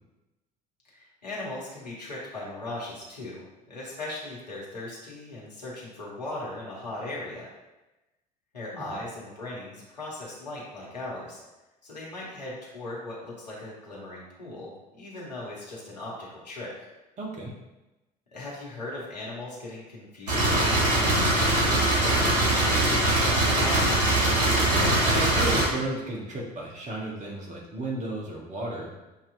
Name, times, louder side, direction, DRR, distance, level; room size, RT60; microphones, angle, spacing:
voice 1, 0.9-7.5 8.5-11.4 11.8-16.7 18.3-24.1, left 2 dB, 85° left, -5 dB, 1.3 m, -38 dB
voice 2, 17.2-17.5 24.7-28.9, right 2 dB, 35° right, -2 dB, 1.3 m, -33 dB
sound 1, 20.3-25.7, right 1 dB, 80° right, 1.2 m, -22 dB
6.6 x 2.9 x 2.7 m, 1.0 s
figure-of-eight pair, 65°, 21 cm